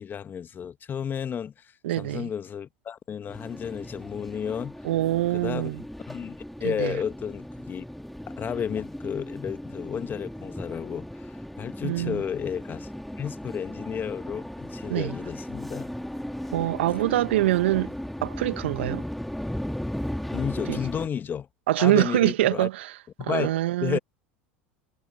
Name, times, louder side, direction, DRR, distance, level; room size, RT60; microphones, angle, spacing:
voice 1, 0.0-4.8 5.3-5.7 6.1-7.8 8.3-12.9 13.2-15.9 20.3-21.5 21.8-22.7 23.2-24.0, left 8 dB, 30° left, 1.7 m, -32 dB
voice 2, 1.8-2.3 4.8-5.8 6.6-7.0 11.8-12.2 14.9-15.1 16.5-17.9 18.2-19.0 20.7-20.8 21.7-22.9 23.2-24.0, right 15 dB, 75° right, 1.8 m, -24 dB
sound 1, 3.3-21.1, equal, ahead, 2.6 m, -36 dB
hypercardioid pair, 80°, 6 cm